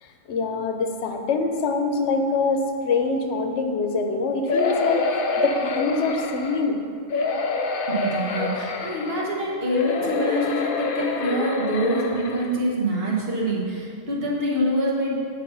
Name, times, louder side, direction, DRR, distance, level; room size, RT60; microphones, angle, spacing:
voice 1, 0.0-6.8, left 3 dB, 80° left, 4 dB, 1.0 m, -24 dB
sound 1, 4.5-6.6 7.1-9.3 9.7-12.5 13.1-13.2 13.5-13.6, left 3 dB, 60° left, 0.7 m, -27 dB
voice 2, 7.9-15.2, right 1 dB, 55° right, -4 dB, 1.5 m, -25 dB
8.5 x 4.1 x 5.5 m, 2.4 s
omnidirectional pair, 1.2 m